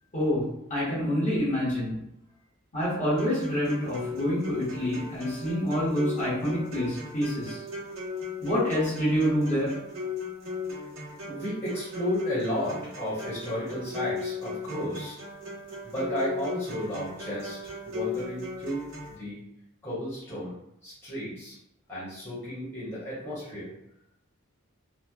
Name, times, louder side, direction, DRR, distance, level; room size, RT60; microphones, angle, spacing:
voice 1, 0.1-2.0 2.7-7.6 8.4-9.7, equal, 35° left, -9 dB, 1.0 m, -27 dB
sound 1, 3.2-19.2, left 4 dB, 75° right, 0.8 m, -37 dB
voice 2, 11.2-15.2 15.8-17.6 17.8-19.4 19.8-20.5 20.8-21.5 21.9-23.7, equal, 10° left, -12 dB, 1.0 m, -33 dB
2.9 x 2.1 x 2.3 m, 0.78 s
head